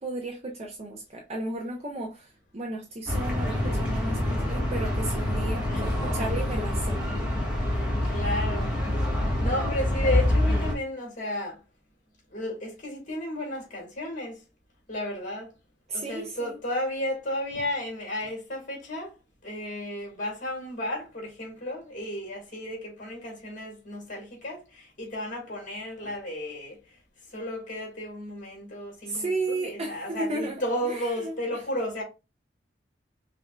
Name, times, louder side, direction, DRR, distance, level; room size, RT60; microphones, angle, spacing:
voice 1, 0.0-7.0 15.9-16.5 29.0-31.6, right 2 dB, 35° right, 0.7 m, -34 dB
sound 1, 3.1-10.7, left 1 dB, 5° right, 1.4 m, -26 dB
voice 2, 7.7-8.7 9.4-11.6 12.3-14.4 14.9-15.5 15.9-19.1 19.4-26.8 27.3-32.0, left 1 dB, 45° left, 2.3 m, -33 dB
5.5 x 2.6 x 2.4 m
head